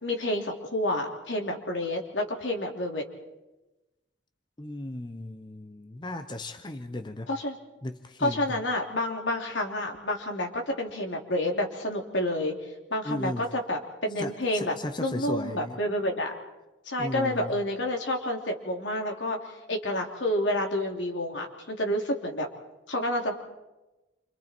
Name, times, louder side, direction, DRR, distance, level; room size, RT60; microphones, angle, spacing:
voice 1, 0.0-3.0 7.3-7.6 8.2-12.5 12.9-16.3 16.8-22.5 22.9-23.4, left 1 dB, 80° left, 2 dB, 3.3 m, -29 dB
voice 2, 4.6-7.3 7.8-8.6 13.0-13.5 14.2-15.8 17.0-17.5, left 1 dB, 25° left, 8 dB, 0.9 m, -36 dB
28.5 x 25.5 x 4.5 m, 1.0 s
head